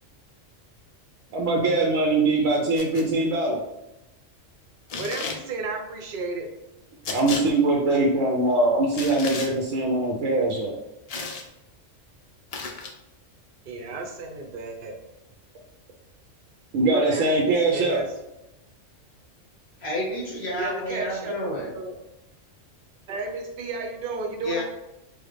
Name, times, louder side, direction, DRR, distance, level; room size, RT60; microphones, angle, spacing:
voice 1, 1.3-3.6 7.1-10.8 16.7-18.0, right 2 dB, 90° right, -1 dB, 1.0 m, -22 dB
sound 1, 2.8-3.1 4.9-5.4 7.0-7.4 8.9-9.5 11.1-11.5 12.5-12.9, left 4 dB, 85° left, 0.3 m, -33 dB
voice 2, 5.0-6.5 13.7-14.9 16.8-18.1 20.6-22.0 23.1-24.6, right 3 dB, 55° right, 3 dB, 0.7 m, -33 dB
voice 3, 19.8-21.7 24.4-24.6, equal, 55° left, -5 dB, 1.5 m, -30 dB
4.5 x 2.1 x 3.2 m, 0.93 s
omnidirectional pair, 1.3 m